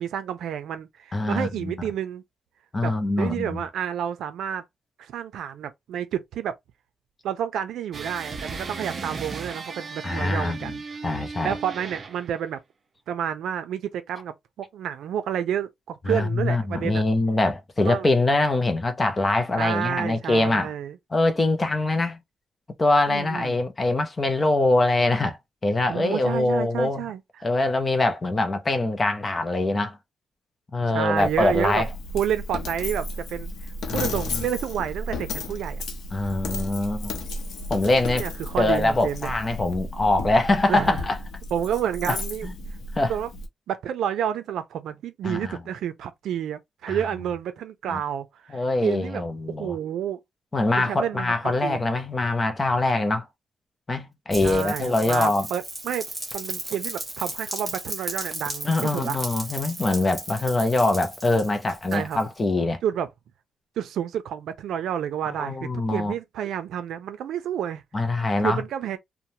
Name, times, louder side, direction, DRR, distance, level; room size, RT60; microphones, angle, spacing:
voice 1, 0.0-2.2 2.8-4.6 5.0-6.6 7.2-10.8 11.4-12.6 13.1-17.0 17.8-18.1 19.6-21.0 23.1-23.6 25.9-27.2 30.8-31.8 32.1-33.5 33.9-35.8 38.2-39.3 40.7-41.0 41.5-42.5 43.0-43.3 43.7-49.2 49.6-50.2 50.8-51.8 54.4-56.1 56.3-59.2 61.9-62.2 62.8-63.1 63.8-65.6 65.9-67.8 68.4-69.0, right 9 dB, 85° right, 0.5 m, -30 dB
voice 2, 1.1-1.7 2.7-3.6 10.0-10.7 11.0-11.6 16.1-20.7 21.1-22.2 22.8-25.4 25.6-27.1 27.4-30.0 30.7-31.9 33.9-34.5 36.1-37.1 37.7-38.2 38.6-41.1 42.1-42.2 42.4-42.5 42.9-43.1 45.2-45.6 46.9-47.0 47.9-48.0 48.5-49.7 50.5-53.3 53.9-55.5 58.6-62.8 65.3-66.1 67.9-68.6, left 2 dB, 20° left, 0.5 m, -23 dB
sound 1, 7.9-12.4, right 4 dB, 30° right, 0.5 m, -36 dB
Coin (dropping), 31.2-43.5, left 2 dB, 70° left, 0.7 m, -33 dB
Rain, 54.3-62.4, right 1 dB, 5° right, 0.8 m, -35 dB
3.0 x 2.1 x 2.6 m
wide cardioid pair, 175°, 0 cm